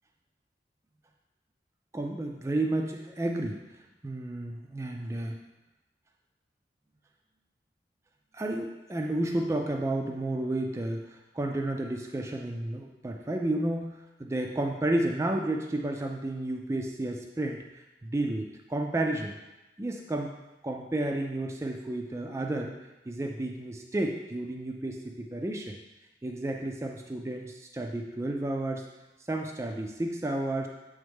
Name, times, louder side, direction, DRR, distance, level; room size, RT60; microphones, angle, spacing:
voice 1, 1.9-5.4 8.3-19.3 19.8-20.3 20.6-22.8 23.1-25.8 26.2-28.9 29.3-30.7, right 1 dB, 15° right, 2 dB, 0.3 m, -32 dB
7.6 x 3.5 x 3.5 m, 0.98 s
head